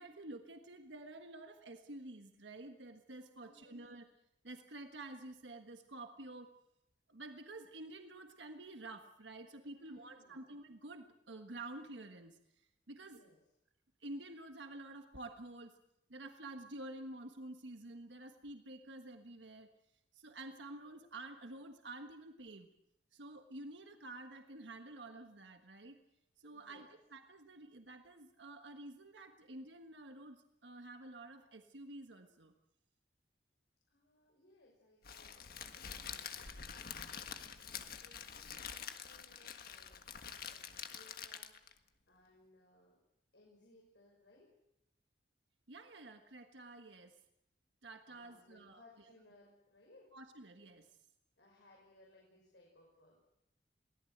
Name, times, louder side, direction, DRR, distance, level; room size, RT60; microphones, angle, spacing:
voice 1, 0.0-4.0 4.4-6.6 7.1-13.2 14.0-15.8 16.1-19.7 20.1-22.7 23.1-26.0 26.4-32.5 45.7-47.2 47.8-48.8 50.1-51.0, right 2 dB, 85° right, 5 dB, 1.5 m, -50 dB
voice 2, 3.3-3.8 9.7-10.5 13.0-13.4 26.5-27.0 33.9-40.2 40.4-41.5 42.1-43.0 43.3-44.6 48.1-50.1 51.4-53.3, left 1 dB, 75° left, -2 dB, 6.0 m, -65 dB
Crackle, 35.0-41.8, left 7 dB, 55° left, 1.6 m, -47 dB
23.0 x 18.0 x 8.0 m, 0.84 s
head